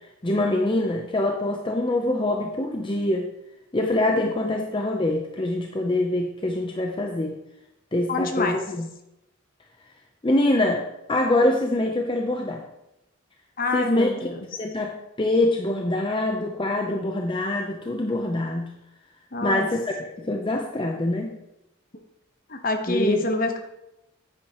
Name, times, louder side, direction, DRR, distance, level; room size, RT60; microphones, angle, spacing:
voice 1, 0.2-3.3 3.7-7.3 7.9-8.9 10.2-10.8 11.1-12.6 13.7-14.3 14.6-18.7 19.4-21.4 22.9-23.2, left 1 dB, 25° left, 2 dB, 0.6 m, -24 dB
voice 2, 8.1-8.6 13.6-14.5 19.3-19.7 22.5-23.6, left 2 dB, 45° left, 5 dB, 1.0 m, -26 dB
10.5 x 8.9 x 3.0 m, 0.88 s
head